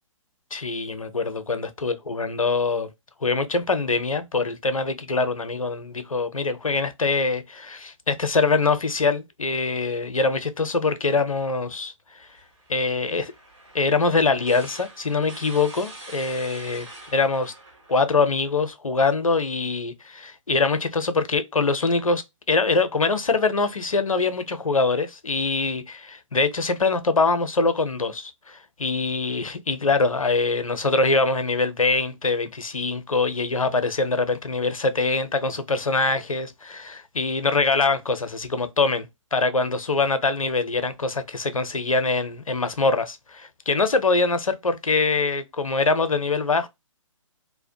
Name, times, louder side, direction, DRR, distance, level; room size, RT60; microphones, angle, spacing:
voice 1, 0.5-2.9 3.2-12.3 12.7-13.3 13.7-17.5 17.9-46.7, left 3 dB, 80° left, 0.5 m, -24 dB
sound 1, 12.2-18.7, right 2 dB, 55° right, 1.4 m, -45 dB
2.7 x 2.0 x 2.6 m
figure-of-eight pair, 130°, 17 cm